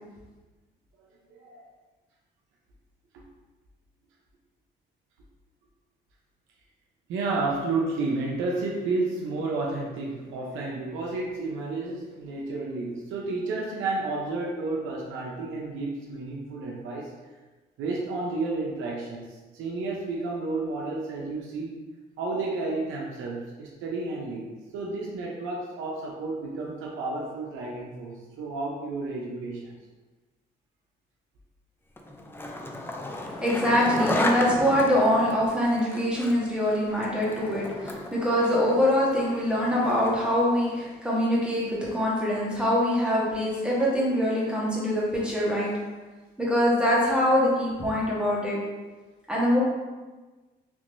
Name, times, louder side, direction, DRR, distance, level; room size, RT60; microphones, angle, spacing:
voice 1, 1.0-1.7 3.1-3.2 7.1-17.1 17.8-21.7 22.2-24.5 24.7-29.7 35.9-36.0, right 3 dB, 85° right, -3 dB, 0.6 m, -31 dB
Skateboard, 32.0-40.3, left 1 dB, 10° left, 0.4 m, -33 dB
voice 2, 33.4-45.7 46.4-48.6 49.3-49.6, equal, 5° right, -6 dB, 1.2 m, -24 dB
3.5 x 2.9 x 2.5 m, 1.3 s
cardioid pair, 90°, 20 cm